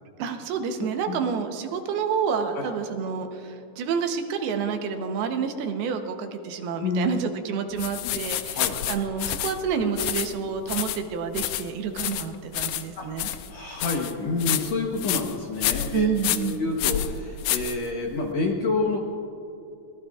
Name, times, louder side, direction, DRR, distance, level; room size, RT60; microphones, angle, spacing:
voice 1, 0.2-13.3 15.9-16.6, right 6 dB, 85° right, 6 dB, 2.9 m, -29 dB
sound 1, 7.8-18.3, left 12 dB, 80° left, 2.3 m, -30 dB
voice 2, 13.5-19.0, left 3 dB, 65° left, 0 dB, 1.7 m, -28 dB
24.0 x 18.5 x 2.4 m, 2.9 s
omnidirectional pair, 4.4 m